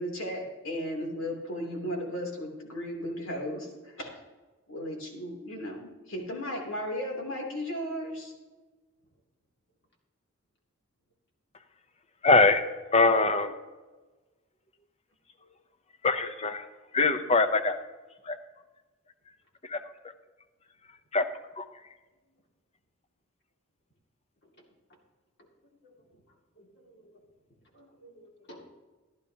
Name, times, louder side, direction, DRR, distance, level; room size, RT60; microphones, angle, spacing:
voice 1, 0.0-4.1 4.7-8.3, equal, 70° left, -1 dB, 3.1 m, -35 dB
voice 2, 12.2-12.6 12.9-13.5 16.0-16.7 16.9-17.8 18.3-18.4 19.7-19.8 21.1-21.2 21.6-21.7, left 3 dB, 30° left, 9 dB, 0.7 m, -22 dB
voice 3, 26.6-27.2 27.7-28.7, equal, 55° left, 0 dB, 2.4 m, -53 dB
15.0 x 11.5 x 2.9 m, 1.2 s
head